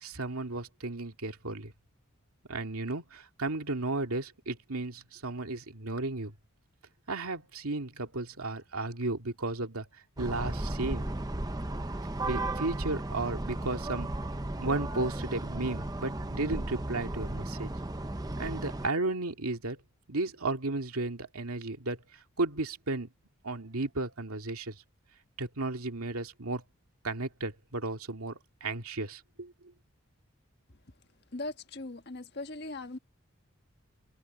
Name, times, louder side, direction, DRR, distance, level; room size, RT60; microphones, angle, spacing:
voice 1, 0.0-1.7 2.5-6.3 7.1-9.9 10.2-11.1 12.2-14.1 14.6-17.7 18.4-19.8 20.1-23.1 23.4-24.8 25.4-26.6 27.0-29.5, right 2 dB, 85° right, 2.3 m, -34 dB
sound 1, 10.2-18.9, right 1 dB, 15° right, 0.7 m, -35 dB
voice 2, 31.3-33.0, left 2 dB, 50° left, 1.4 m, -39 dB
head